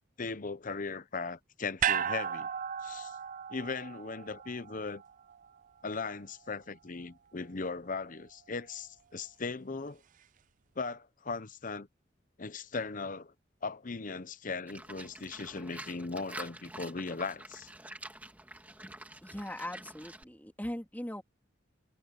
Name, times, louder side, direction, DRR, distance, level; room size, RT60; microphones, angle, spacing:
voice 1, 0.2-2.5 2.8-3.2 3.5-5.0 5.8-10.0 10.8-11.9 12.4-13.3 13.6-17.7, left 4 dB, 45° left, 0.8 m, -38 dB
sound 1, 1.8-6.2 6.5-6.6, right 8 dB, 40° right, 0.5 m, -35 dB
Livestock farm animals working animals, 14.7-20.2, right 1 dB, 10° right, 1.9 m, -47 dB
voice 2, 19.2-21.2, left 1 dB, 10° left, 3.0 m, -40 dB
head